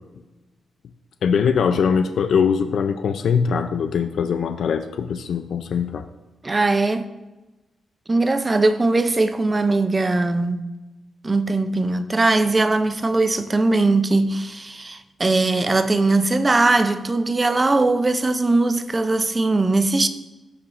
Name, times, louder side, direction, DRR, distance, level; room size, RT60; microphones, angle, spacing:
voice 1, 1.2-6.0, left 6 dB, 65° left, 0.4 m, -21 dB
voice 2, 6.4-7.1 8.1-10.7 11.2-20.1, right 2 dB, 20° right, 0.4 m, -20 dB
14.0 x 4.8 x 2.5 m
wide cardioid pair, 150°, 0 cm